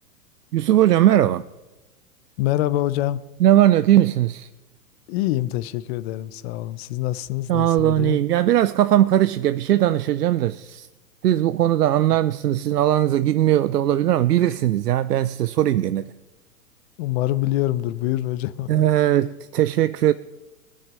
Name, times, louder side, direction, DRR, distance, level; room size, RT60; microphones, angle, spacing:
voice 1, 0.5-1.4 3.4-4.5 7.5-10.9 11.2-16.1 18.7-20.1, right 12 dB, 85° right, 0.6 m, -19 dB
voice 2, 2.4-3.2 5.1-8.2 17.0-18.8, left 15 dB, 45° left, 0.8 m, -25 dB
19.0 x 6.6 x 9.0 m
hypercardioid pair, 120°, 46 cm